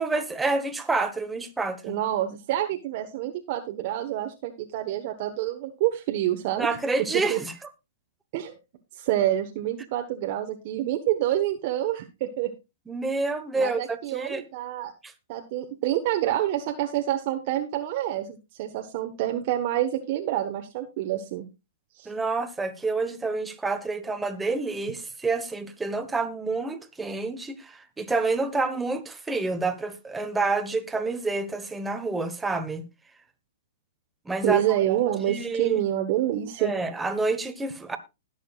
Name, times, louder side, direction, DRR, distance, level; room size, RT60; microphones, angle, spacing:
voice 1, 0.0-2.0 6.6-7.5 12.9-14.4 15.0-15.1 22.0-32.8 34.2-34.8 35.3-35.8 36.6-38.0, right 3 dB, 10° right, 1.3 m, -28 dB
voice 2, 1.8-6.7 7.3-7.4 8.3-8.5 8.9-12.5 13.5-14.9 15.3-21.4 22.0-22.1 34.4-36.7, right 12 dB, 50° right, 1.2 m, -27 dB
20.0 x 7.0 x 2.4 m
hypercardioid pair, 130°, 0 cm